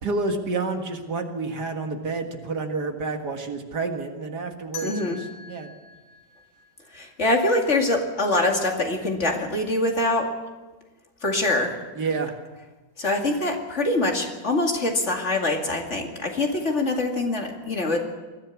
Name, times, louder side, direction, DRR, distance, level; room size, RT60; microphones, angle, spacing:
voice 1, 0.0-5.7 12.0-12.3, right 3 dB, 65° right, 4 dB, 2.3 m, -29 dB
sound 1, 4.7-7.6, left 5 dB, 65° left, 8.0 m, -43 dB
voice 2, 4.8-5.2 6.9-10.4 11.2-11.8 13.0-18.0, left 2 dB, 40° left, 2 dB, 2.6 m, -24 dB
21.5 x 14.5 x 8.4 m, 1.3 s
omnidirectional pair, 1.9 m